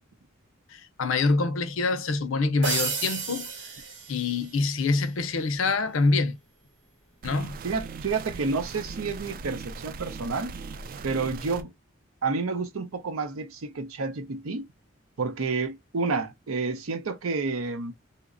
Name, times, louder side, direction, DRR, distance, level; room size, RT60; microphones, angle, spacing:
voice 1, 0.7-3.5 4.1-6.4 7.2-7.6, left 3 dB, 70° left, 0.5 m, -25 dB
sound 1, 2.6-4.7, right 5 dB, 60° right, 0.9 m, -32 dB
sound 2, 7.2-11.6, right 4 dB, 45° right, 0.3 m, -39 dB
voice 2, 7.6-10.5 11.0-11.7 12.2-14.6 15.2-17.9, right 4 dB, 90° right, 0.6 m, -30 dB
2.8 x 2.1 x 2.4 m
head